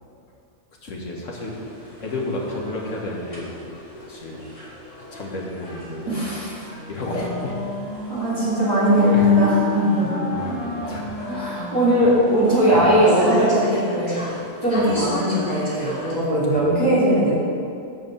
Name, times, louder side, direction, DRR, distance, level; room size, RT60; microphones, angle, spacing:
voice 1, 0.8-1.5 2.0-3.5 4.0-4.4 5.1-6.3 6.6-7.6 9.0-9.4 10.3-11.6 12.6-13.0 14.7-15.0 16.5-16.8, left 2 dB, 85° left, -2 dB, 2.0 m, -31 dB
sound 1, 1.3-16.2, left 1 dB, 40° left, 3.0 m, -38 dB
voice 2, 6.1-6.5 8.1-10.6 11.3-14.2 14.6-17.4, equal, 20° right, -11 dB, 2.4 m, -19 dB
Wind instrument woodwind instrument, 6.7-12.8, left 1 dB, 60° left, 2.0 m, -32 dB
10.0 x 5.0 x 7.4 m, 2.6 s
omnidirectional pair, 1.3 m